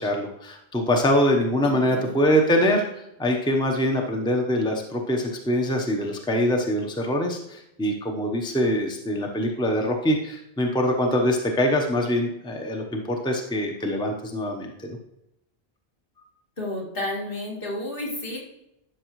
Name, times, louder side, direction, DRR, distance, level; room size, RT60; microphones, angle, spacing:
voice 1, 0.0-15.0, equal, 5° left, 2 dB, 0.9 m, -24 dB
voice 2, 1.6-2.2 16.6-18.4, left 1 dB, 60° left, -3 dB, 2.4 m, -31 dB
12.0 x 6.1 x 3.1 m, 0.86 s
omnidirectional pair, 1.0 m